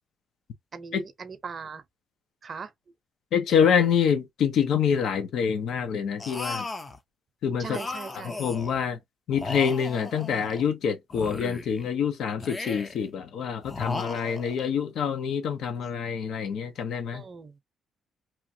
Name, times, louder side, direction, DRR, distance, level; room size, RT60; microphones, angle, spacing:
voice 1, 0.7-1.8 2.4-2.7 7.6-8.4 17.1-17.5, right 5 dB, 45° right, 0.6 m, -39 dB
voice 2, 3.3-6.7 7.4-8.0 8.4-9.0 9.3-17.2, left 7 dB, 75° left, 0.7 m, -26 dB
sound 1, 6.2-7.0 7.7-8.8 9.3-10.7 11.1-11.9 12.4-13.1 13.6-14.7, left 3 dB, 30° left, 0.5 m, -36 dB
2.9 x 2.4 x 2.7 m
cardioid pair, 90°, 0 cm